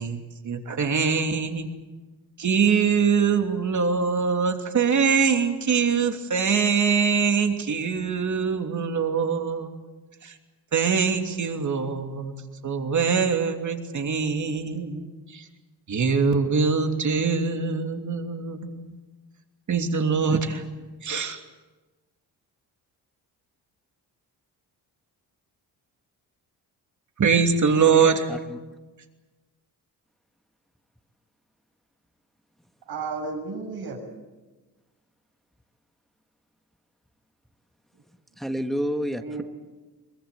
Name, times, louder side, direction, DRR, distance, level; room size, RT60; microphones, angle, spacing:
voice 1, 0.0-1.7 2.4-9.7 10.2-10.3 10.7-12.3 12.6-15.4 15.9-18.9 19.7-20.6 21.0-21.4 27.2-28.3, right 5 dB, 45° right, 5 dB, 3.0 m, -23 dB
voice 2, 28.3-28.6 38.4-39.4, equal, ahead, 7 dB, 1.5 m, -29 dB
voice 3, 32.9-34.0 39.2-39.4, right 4 dB, 70° right, 1 dB, 7.1 m, -32 dB
23.5 x 21.5 x 8.5 m, 1.2 s
cardioid pair, 90°, 39 cm